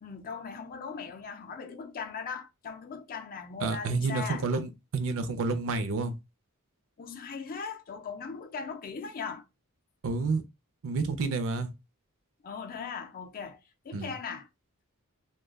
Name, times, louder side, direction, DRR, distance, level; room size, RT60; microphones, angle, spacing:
voice 1, 0.0-4.5 7.0-9.5 12.4-14.5, left 5 dB, 40° left, 0.4 m, -39 dB
voice 2, 3.6-6.1 10.0-10.4 10.8-11.7 13.9-14.1, right 3 dB, 65° right, 0.5 m, -29 dB
2.2 x 2.2 x 3.3 m
head